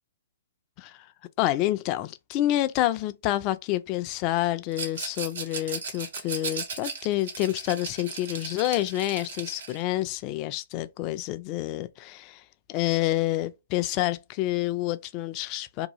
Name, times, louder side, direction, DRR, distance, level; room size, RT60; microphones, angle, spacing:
voice 1, 1.4-12.4 12.7-15.9, left 15 dB, 30° left, 0.3 m, -28 dB
Rattle, 4.7-9.8, right 5 dB, 65° right, 1.1 m, -36 dB
2.7 x 2.3 x 2.9 m
hypercardioid pair, 135°, 0 cm